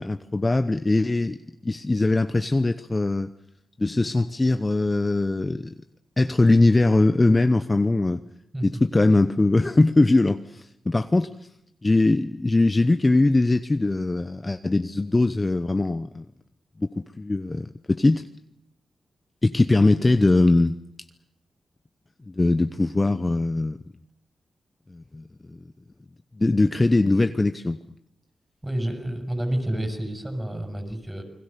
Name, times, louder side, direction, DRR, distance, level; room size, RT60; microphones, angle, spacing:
voice 1, 0.0-1.4 1.6-3.3 3.8-5.7 6.2-8.2 8.6-11.3 11.8-16.2 16.8-18.2 19.4-20.8 22.3-23.8 24.9-25.6 26.4-27.8, left 2 dB, 25° left, 0.9 m, -21 dB
voice 2, 28.6-31.2, right 1 dB, 10° right, 6.5 m, -29 dB
29.0 x 22.0 x 6.8 m
wide cardioid pair, 100°, 0 cm